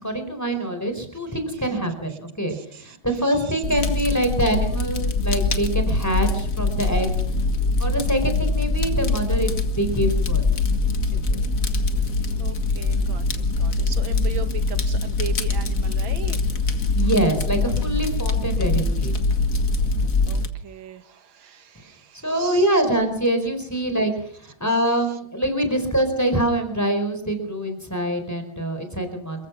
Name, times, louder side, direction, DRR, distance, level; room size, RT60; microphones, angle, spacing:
voice 1, 0.0-7.1 7.8-10.6 11.1-11.4 16.9-19.1 22.2-29.5, right 1 dB, 10° left, 7 dB, 4.6 m, -24 dB
voice 2, 2.5-3.0 3.3-3.6 12.4-16.4 20.3-22.8, right 7 dB, 80° right, 10 dB, 2.1 m, -38 dB
Fire, 3.6-20.5, left 3 dB, 45° left, 2.0 m, -23 dB
28.5 x 15.0 x 6.0 m, 0.63 s
omnidirectional pair, 2.1 m